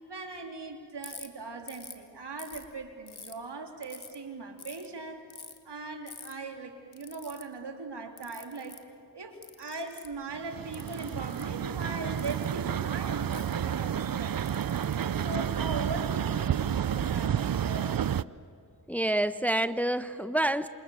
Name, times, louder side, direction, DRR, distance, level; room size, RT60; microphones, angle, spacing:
voice 1, 0.1-5.2 5.6-8.8 9.1-17.9, right 3 dB, 75° right, 4 dB, 3.2 m, -40 dB
Ratchet pawl, 1.0-1.3 1.7-2.0 2.4-3.3 3.8-4.2 4.6-4.9 5.3-5.6 6.1-6.3 6.9-7.4 8.2-8.8 9.4-10.2 10.7-11.4 12.2-12.5 13.3-13.5 14.3-15.7, left 5 dB, 65° left, 2.3 m, -46 dB
sound 1, 10.3-18.2, right 9 dB, 55° right, 0.6 m, -30 dB
voice 2, 18.9-20.7, right 1 dB, 5° left, 12 dB, 0.9 m, -27 dB
27.5 x 26.5 x 7.1 m, 2.6 s
cardioid pair, 40°, 41 cm